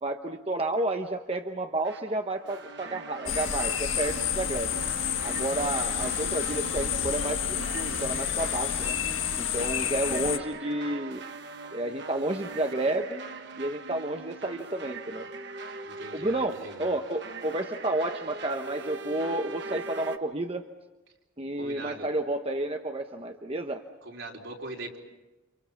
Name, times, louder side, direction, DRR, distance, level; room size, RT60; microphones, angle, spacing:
voice 1, 0.0-4.7 5.2-9.0 9.4-11.2 11.7-13.2 13.6-15.3 16.1-20.6 21.4-23.8, right 1 dB, 30° right, 5 dB, 1.0 m, -31 dB
sound 1, 1.8-20.2, right 3 dB, 55° right, 1.3 m, -41 dB
sound 2, 3.3-10.4, left 9 dB, 75° left, 1.5 m, -30 dB
voice 2, 9.6-9.9 15.8-16.9 21.6-22.1 24.0-25.0, right 2 dB, 70° right, -1 dB, 4.5 m, -41 dB
30.0 x 27.5 x 5.8 m, 1.1 s
head